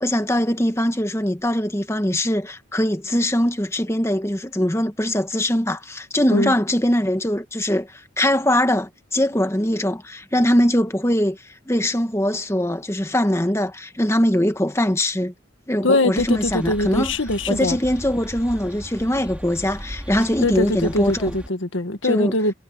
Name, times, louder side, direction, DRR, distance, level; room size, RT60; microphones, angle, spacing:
voice 1, 0.0-11.4 11.7-15.3 15.7-17.1 17.5-21.3 22.0-22.3, left 1 dB, 15° left, 1.3 m, -22 dB
voice 2, 15.8-17.8 20.4-22.5, left 2 dB, 80° left, 1.8 m, -22 dB
sound 1, 16.2-21.5, equal, 5° right, 4.3 m, -37 dB
head